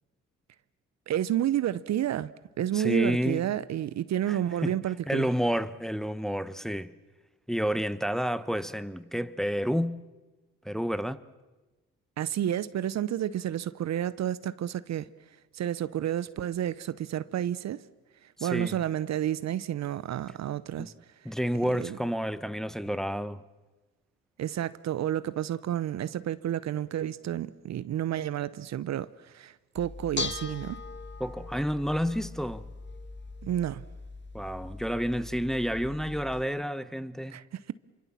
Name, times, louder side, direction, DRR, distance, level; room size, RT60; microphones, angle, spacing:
voice 1, 1.1-2.3 2.6-5.3 12.2-15.1 15.5-17.8 18.4-20.9 21.8-22.0 24.4-30.8 33.4-33.8 37.3-37.7, right 11 dB, 55° right, 0.8 m, -30 dB
voice 2, 2.7-3.4 4.3-4.8 5.1-7.0 7.5-10.0 10.6-11.2 18.4-18.8 20.8-20.9 21.2-23.4 31.2-32.7 34.3-37.4, equal, ahead, 1.0 m, -30 dB
Bell / Dishes pots and pans, 29.8-36.4, left 4 dB, 35° left, 1.4 m, -40 dB
26.5 x 24.5 x 7.3 m
supercardioid pair, 60°, 32 cm